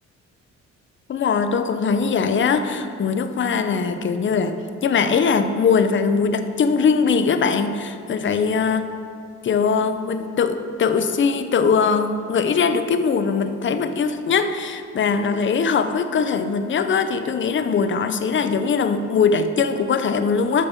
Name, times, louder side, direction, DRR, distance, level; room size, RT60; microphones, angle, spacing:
voice 1, 1.1-8.9 9.4-20.7, left 5 dB, 40° left, 10 dB, 0.5 m, -21 dB
7.3 x 6.0 x 4.0 m, 2.4 s
cardioid pair, 90°, 30 cm